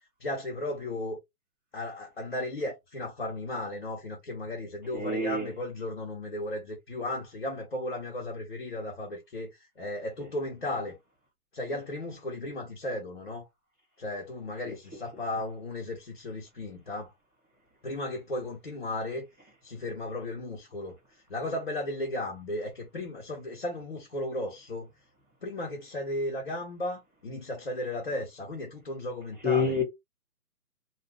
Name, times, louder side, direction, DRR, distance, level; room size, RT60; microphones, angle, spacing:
voice 1, 0.2-1.2 1.7-11.0 11.5-13.5 14.0-17.1 17.8-19.3 19.6-24.9 25.4-29.8, left 1 dB, 45° left, 0.7 m, -35 dB
voice 2, 4.9-5.5 10.2-10.3 14.6-14.7 29.4-29.8, left 4 dB, 5° left, 0.8 m, -27 dB
2.4 x 2.2 x 3.3 m
hypercardioid pair, 175°, 44 cm